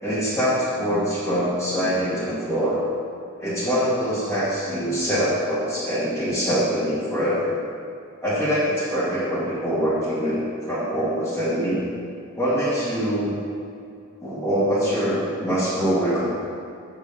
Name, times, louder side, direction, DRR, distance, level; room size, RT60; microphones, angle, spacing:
voice 1, 0.0-2.8 3.4-7.6 8.2-10.4 10.7-12.0 12.4-13.3 14.2-16.3, equal, 10° left, -12 dB, 2.0 m, -24 dB
8.1 x 5.7 x 6.9 m, 2.5 s
head